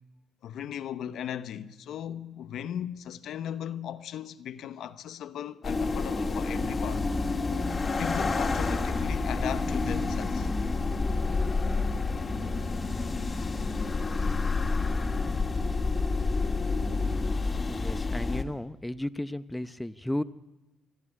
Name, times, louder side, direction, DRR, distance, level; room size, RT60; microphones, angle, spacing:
voice 1, 0.4-7.1 8.0-10.5 13.3-13.5 13.8-15.5, left 10 dB, 75° left, 0.9 m, -38 dB
sound 1, 5.6-18.4, left 3 dB, 30° left, 2.0 m, -29 dB
voice 2, 17.7-20.2, left 1 dB, 10° left, 0.8 m, -34 dB
27.0 x 11.5 x 9.8 m
cardioid pair, 90°, 0 cm